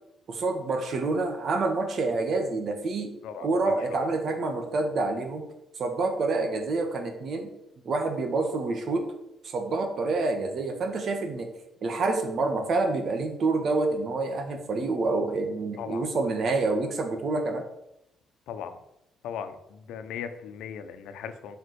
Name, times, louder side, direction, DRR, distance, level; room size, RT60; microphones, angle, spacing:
voice 1, 0.3-3.1 3.4-5.4 5.8-7.5 7.8-9.0 9.4-11.5 11.8-17.6, right 3 dB, 55° right, 5 dB, 2.1 m, -27 dB
voice 2, 18.5-18.8 19.2-21.6, left 8 dB, 85° left, 9 dB, 1.0 m, -38 dB
9.5 x 5.7 x 7.0 m, 0.85 s
cardioid pair, 90°, 0 cm